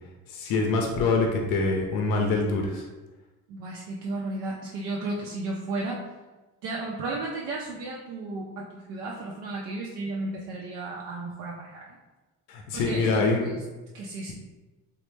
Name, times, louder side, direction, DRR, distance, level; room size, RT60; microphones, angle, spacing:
voice 1, 0.3-2.9 12.5-13.5, left 3 dB, 85° left, 1 dB, 0.5 m, -25 dB
voice 2, 3.5-6.1 6.6-12.0 12.7-13.5 13.9-14.3, right 2 dB, 90° right, -3 dB, 0.5 m, -34 dB
3.1 x 2.0 x 3.2 m, 1.2 s
cardioid pair, 90°, 32 cm